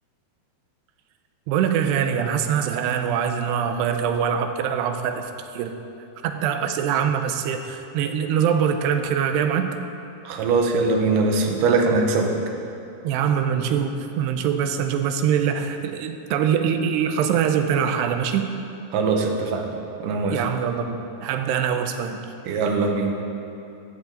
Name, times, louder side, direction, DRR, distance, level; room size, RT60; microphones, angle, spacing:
voice 1, 1.5-5.3 5.5-5.7 6.2-9.7 13.0-18.5 20.3-22.2, right 8 dB, 85° right, 7 dB, 2.8 m, -23 dB
voice 2, 10.2-12.4 18.9-19.7 20.0-20.4 22.5-23.1, right 3 dB, 65° right, 2 dB, 2.3 m, -21 dB
15.5 x 12.5 x 3.9 m, 2.7 s
omnidirectional pair, 4.9 m